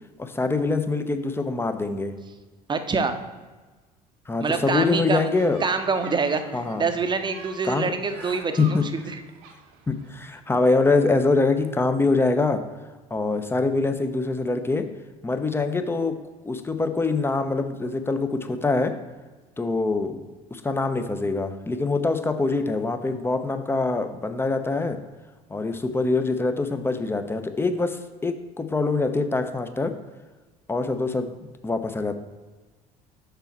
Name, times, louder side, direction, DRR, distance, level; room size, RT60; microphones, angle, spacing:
voice 1, 0.2-2.1 4.3-5.6 6.5-6.8 7.6-7.9 8.2-8.8 9.9-12.6 13.1-14.9 15.2-16.2 16.5-18.9 19.6-20.2 20.5-25.0 25.5-30.0 30.7-31.3 31.6-32.2, left 3 dB, 10° left, 8 dB, 0.7 m, -24 dB
voice 2, 2.7-3.2 4.4-5.3 5.6-9.2, right 4 dB, 20° right, 8 dB, 0.8 m, -26 dB
sound 1, 5.3-10.4, right 5 dB, 60° right, 1.0 m, -45 dB
6.8 x 5.6 x 4.6 m, 1.3 s
figure-of-eight pair, 60°, 21 cm